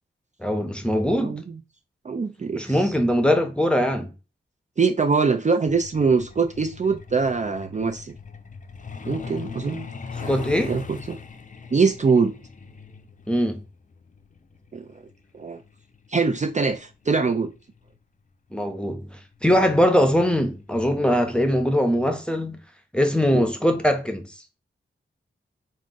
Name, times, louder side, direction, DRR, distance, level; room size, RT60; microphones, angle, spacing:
voice 1, 0.4-1.4 2.5-4.1 10.3-10.7 13.3-13.6 18.5-19.2 19.4-22.6 22.9-24.3, equal, 5° left, 0.8 m, -21 dB
voice 2, 2.0-2.9 4.8-8.2 9.1-9.9 10.2-10.3 10.7-11.2 11.7-12.3 14.7-14.9 15.3-15.6 16.1-17.5 23.3-23.4, right 4 dB, 35° right, 0.4 m, -23 dB
Truck, 5.7-18.0 19.2-19.4 19.8-19.9 20.3-20.6 20.9-21.0 21.5-21.6, left 5 dB, 40° left, 0.5 m, -40 dB
3.7 x 2.5 x 3.8 m
wide cardioid pair, 65°, 21 cm